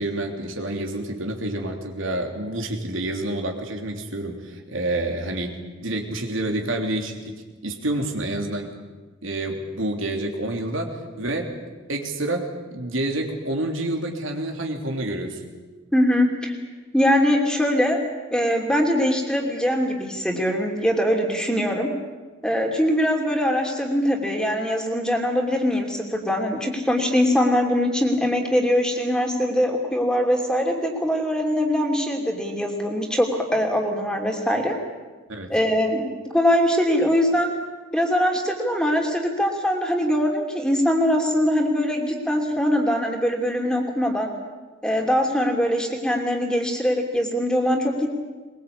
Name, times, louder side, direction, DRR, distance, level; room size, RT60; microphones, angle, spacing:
voice 1, 0.0-8.7 9.2-11.5 11.9-15.4 35.3-35.5, right 1 dB, 85° right, 3 dB, 3.2 m, -28 dB
voice 2, 15.9-16.5 16.9-18.0 18.3-21.9 22.4-34.7 35.5-37.5 37.9-44.3 44.8-48.1, equal, 5° left, 2 dB, 2.9 m, -22 dB
22.0 x 22.0 x 8.6 m, 1.3 s
head